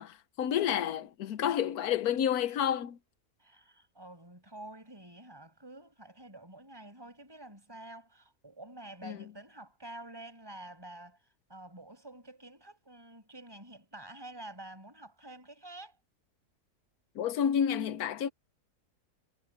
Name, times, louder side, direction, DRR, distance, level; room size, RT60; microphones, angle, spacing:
voice 1, 0.0-3.0 9.0-9.2 17.1-18.3, left 9 dB, 70° left, 1.3 m, -30 dB
voice 2, 2.1-2.6 3.4-16.0, right 1 dB, 15° right, 5.9 m, -49 dB
omnidirectional pair, 1.7 m